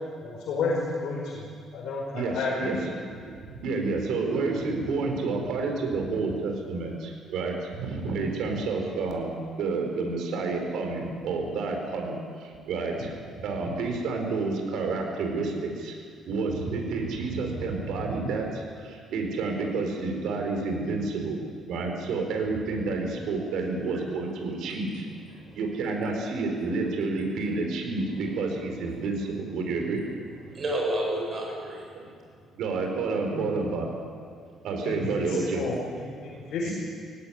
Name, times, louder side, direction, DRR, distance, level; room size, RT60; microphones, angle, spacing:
voice 1, 0.2-1.4 1.7-2.8 33.3-33.5 34.8-36.7, left 3 dB, 65° left, -4 dB, 4.9 m, -31 dB
voice 2, 2.1-2.8 3.0-3.3 3.6-16.0 16.3-21.4 21.6-25.1 25.5-30.0 31.9-32.1 32.6-33.9 34.6-35.6 36.6-36.7, right 3 dB, 70° right, 2 dB, 4.2 m, -29 dB
voice 3, 30.5-31.8 36.2-36.4, right 1 dB, 30° right, -2 dB, 7.9 m, -30 dB
18.0 x 17.0 x 10.0 m, 2.1 s
cardioid pair, 165°, 0 cm